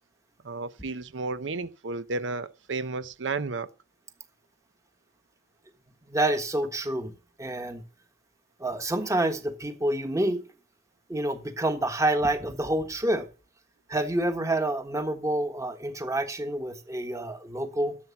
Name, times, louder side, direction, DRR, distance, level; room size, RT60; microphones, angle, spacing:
voice 1, 0.4-3.7, right 3 dB, 85° right, 0.7 m, -32 dB
voice 2, 6.1-7.1 7.4-7.8 8.6-10.4 11.1-13.2 13.9-18.0, right 1 dB, 15° right, 1.4 m, -28 dB
12.0 x 7.4 x 7.1 m
head